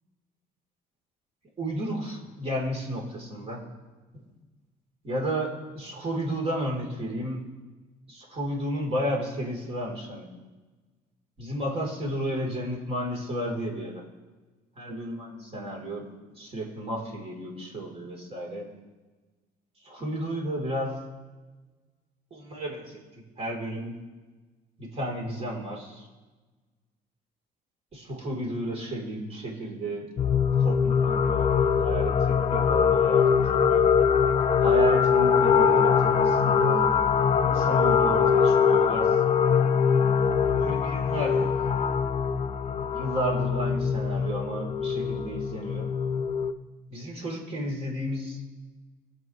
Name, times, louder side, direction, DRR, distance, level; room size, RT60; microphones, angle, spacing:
voice 1, 1.6-3.6 4.1-4.2 5.0-7.4 8.1-10.3 11.4-14.0 14.8-16.1 16.3-18.7 19.8-21.0 22.3-24.0 24.8-26.1 27.9-30.1 30.6-33.9 34.6-36.9 37.4-39.2 40.5-41.5 42.9-45.9 46.9-48.4, right 1 dB, 35° right, -1 dB, 3.6 m, -32 dB
sound 1, 30.2-46.5, left 6 dB, 35° left, 0.5 m, -22 dB
24.0 x 8.1 x 3.2 m, 1.3 s
cardioid pair, 110°, 17 cm